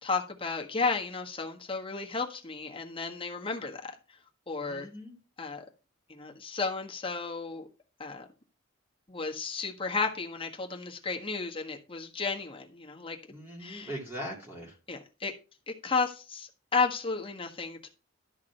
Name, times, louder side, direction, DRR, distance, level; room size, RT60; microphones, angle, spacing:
voice 1, 0.0-3.9 4.5-4.9 5.4-5.6 6.1-7.7 8.0-8.3 9.1-13.2 13.6-13.9 14.9-15.3 15.7-17.9, left 4 dB, 25° left, 1.5 m, -33 dB
voice 2, 4.6-5.2 13.3-14.8, equal, 10° right, 2.6 m, -40 dB
12.5 x 4.9 x 5.8 m
head